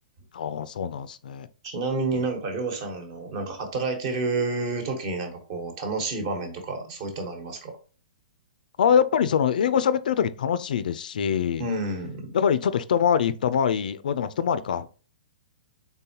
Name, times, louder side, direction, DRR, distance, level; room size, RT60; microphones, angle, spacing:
voice 1, 0.3-1.5 8.8-11.6 12.3-14.9, left 8 dB, 75° left, 0.3 m, -24 dB
voice 2, 1.6-7.7 11.6-12.3, right 3 dB, 45° right, 1.2 m, -29 dB
3.9 x 3.7 x 2.8 m
hypercardioid pair, 140°, 5 cm